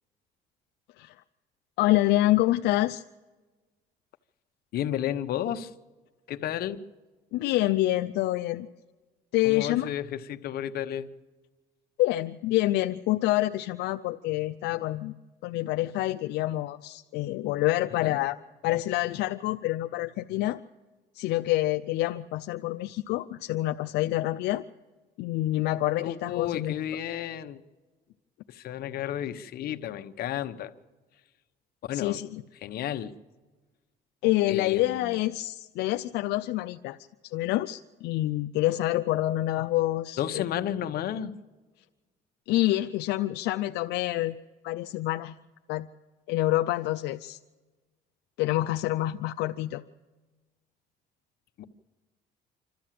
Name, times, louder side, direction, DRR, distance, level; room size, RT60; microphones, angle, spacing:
voice 1, 1.8-3.0 7.3-8.7 9.3-9.9 12.0-15.1 15.4-18.4 18.6-20.6 21.1-24.6 25.2-26.8 31.9-32.4 34.2-37.0 37.2-40.4 42.5-44.4 44.6-45.3 45.7-45.9 46.3-47.4 48.4-49.8, left 16 dB, 85° left, 0.5 m, -27 dB
voice 2, 4.7-5.7 6.3-6.8 9.4-11.1 18.0-18.2 26.0-27.6 28.5-30.7 31.9-32.2 32.6-33.1 34.5-35.2 40.2-41.3 51.6-51.7, left 10 dB, 65° left, 1.0 m, -32 dB
27.0 x 13.0 x 7.6 m
cardioid pair, 110°, 17 cm